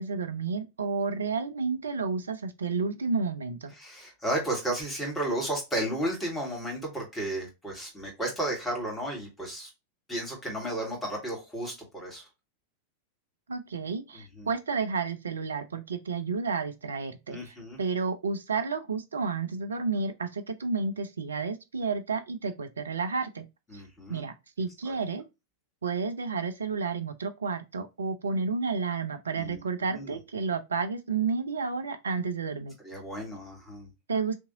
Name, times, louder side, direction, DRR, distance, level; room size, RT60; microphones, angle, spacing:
voice 1, 0.0-3.7 13.5-23.5 23.7-23.8 24.1-25.2 25.8-32.8 34.1-34.4, right 4 dB, 70° right, 0.5 m, -31 dB
voice 2, 3.8-9.7 10.1-12.3 14.4-14.5 17.3-17.8 23.7-24.2 24.9-25.0 29.3-29.6 29.9-30.2 32.8-33.9, right 1 dB, 10° left, 1.8 m, -33 dB
3.5 x 2.9 x 2.7 m
figure-of-eight pair, 90°, 0 cm